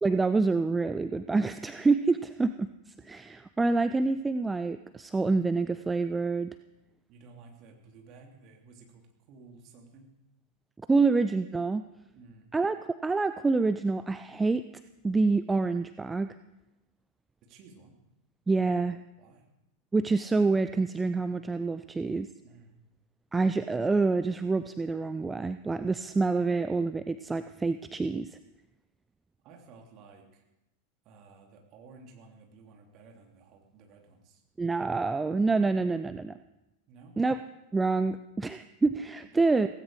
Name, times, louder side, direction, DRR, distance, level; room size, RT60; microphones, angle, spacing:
voice 1, 0.0-6.5 10.9-11.8 12.5-12.8 13.0-14.6 15.0-16.3 18.5-19.0 19.9-22.3 23.3-28.4 34.6-36.4 37.2-37.4 37.7-39.7, right 3 dB, 10° right, 11 dB, 0.5 m, -27 dB
voice 2, 7.1-10.1 12.1-12.5 17.5-17.9 19.2-19.4 22.4-22.8 29.4-30.4 31.0-34.4 36.9-37.1, right 4 dB, 40° right, 2 dB, 3.1 m, -54 dB
17.0 x 16.0 x 4.8 m, 0.92 s
figure-of-eight pair, 90°, 0 cm